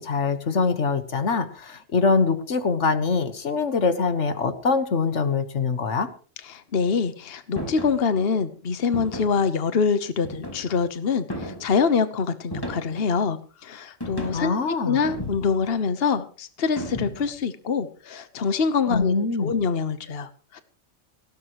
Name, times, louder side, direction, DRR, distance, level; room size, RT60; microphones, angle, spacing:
voice 1, 0.0-6.1 14.3-15.0 18.9-19.5, left 4 dB, 75° left, 10 dB, 1.7 m, -23 dB
voice 2, 6.5-14.5 14.8-19.1 19.4-20.6, left 5 dB, 55° left, 11 dB, 1.3 m, -25 dB
sound 1, 7.6-8.0 8.9-9.4 10.2-10.8 11.3-11.8 12.5-13.1 14.0-14.5 15.0-15.7 16.8-17.4, equal, 20° left, 3.8 m, -34 dB
19.0 x 17.0 x 3.1 m, 0.37 s
omnidirectional pair, 1.2 m